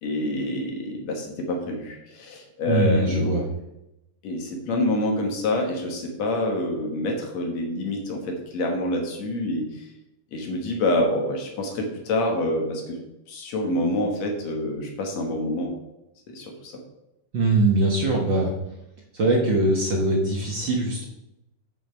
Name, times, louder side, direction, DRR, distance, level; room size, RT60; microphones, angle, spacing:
voice 1, 0.0-3.4 4.2-9.9 10.3-13.0 13.3-15.7 16.3-16.7, left 1 dB, 60° left, 2 dB, 2.4 m, -27 dB
voice 2, 2.7-3.4 17.3-18.5 19.1-21.0, right 2 dB, 55° right, -1 dB, 1.3 m, -22 dB
8.9 x 6.3 x 4.5 m, 0.89 s
omnidirectional pair, 3.7 m